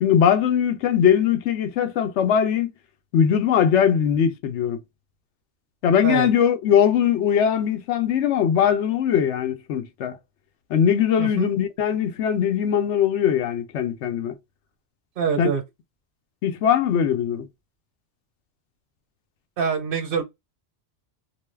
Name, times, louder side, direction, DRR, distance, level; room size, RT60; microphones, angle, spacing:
voice 1, 0.0-2.7 3.1-4.8 5.8-10.2 10.7-14.4 15.4-15.5 16.4-17.5, left 8 dB, 90° left, 0.9 m, -20 dB
voice 2, 11.2-11.5 15.2-15.6 19.6-20.2, right 6 dB, 55° right, 0.9 m, -25 dB
2.6 x 2.2 x 3.2 m
omnidirectional pair, 1.1 m